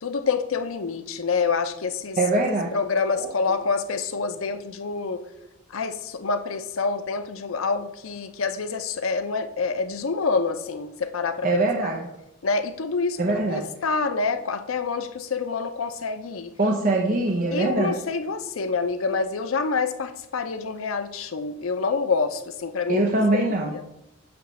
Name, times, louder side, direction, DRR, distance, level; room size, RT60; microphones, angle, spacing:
voice 1, 0.0-2.2 2.7-5.2 5.7-11.5 11.8-11.9 12.4-16.5 17.5-23.0 23.3-23.8, left 4 dB, 85° left, 8 dB, 0.6 m, -27 dB
voice 2, 2.2-2.7 3.1-3.3 11.4-12.0 13.2-13.7 16.6-17.9 22.9-23.8, right 2 dB, 40° right, 1 dB, 0.7 m, -23 dB
8.5 x 3.2 x 6.2 m, 0.86 s
head